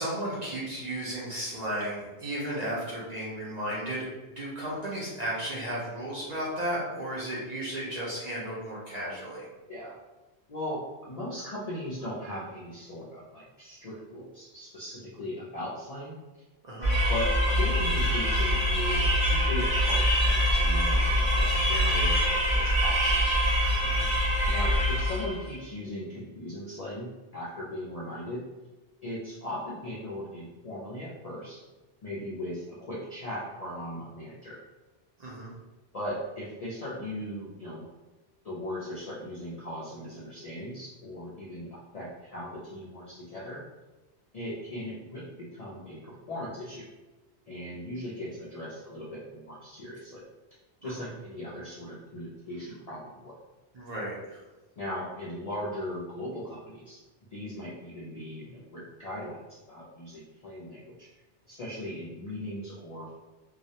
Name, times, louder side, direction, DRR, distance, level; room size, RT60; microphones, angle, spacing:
voice 1, 0.0-4.1 4.4-9.5 16.6-16.9 23.8-24.1 35.2-35.5 50.8-51.1 53.7-54.4, right 1 dB, 50° right, -6 dB, 0.5 m, -34 dB
voice 2, 10.5-16.4 17.1-23.4 24.5-28.4 29.0-31.6 32.0-34.6 35.9-37.9 38.4-43.6 44.3-45.2 45.5-46.9 47.5-50.2 50.8-53.3 54.8-57.0 57.3-59.4 59.7-61.1 61.5-63.2, left 1 dB, 55° left, -7 dB, 0.4 m, -38 dB
sound 1, 16.8-25.4, equal, 35° left, 0.9 m, -24 dB
2.3 x 2.0 x 2.7 m, 1.1 s
omnidirectional pair, 1.1 m